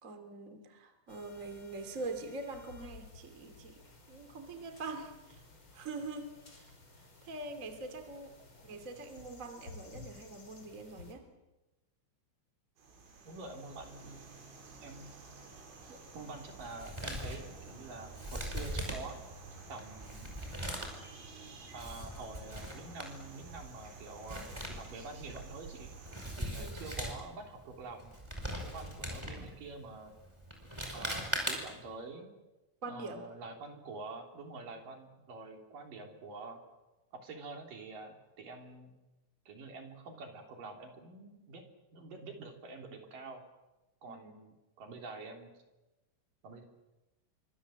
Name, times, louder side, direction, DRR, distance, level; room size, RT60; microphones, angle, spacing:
voice 1, 0.0-5.4 5.7-8.4 8.6-11.3 26.6-26.8 32.8-33.3 44.1-44.4, right 3 dB, 30° right, 7 dB, 1.5 m, -44 dB
sound 1, 1.1-11.1, left 3 dB, 25° left, 5.2 m, -55 dB
sound 2, 12.8-26.4, right 4 dB, 90° right, 8.2 m, -52 dB
voice 2, 13.2-14.3 14.8-15.1 15.9-19.2 19.7-20.4 21.7-25.9 26.4-28.1 28.4-30.1 30.9-32.3 32.8-36.6 37.1-38.9 39.5-41.7 41.9-43.4 44.0-45.5 46.4-46.6, right 3 dB, 45° right, 4 dB, 4.3 m, -47 dB
Male speech man speaking, 16.6-31.9, equal, 5° right, 4.6 m, -41 dB
28.5 x 24.5 x 7.7 m, 1.1 s
omnidirectional pair, 5.8 m